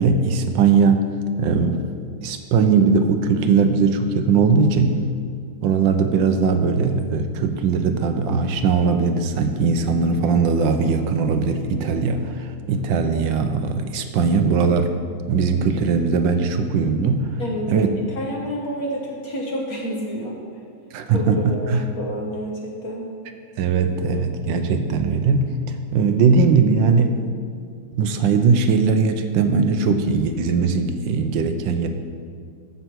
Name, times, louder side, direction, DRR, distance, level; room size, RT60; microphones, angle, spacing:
voice 1, 0.0-1.8 2.2-5.0 5.6-14.9 15.3-17.3 17.7-17.9 20.9-21.8 23.6-27.2 27.9-31.9, right 5 dB, 75° right, 7 dB, 1.3 m, -20 dB
voice 2, 17.4-20.4 21.1-23.1, equal, 50° left, -2 dB, 1.6 m, -29 dB
14.0 x 5.5 x 4.6 m, 2.3 s
omnidirectional pair, 2.3 m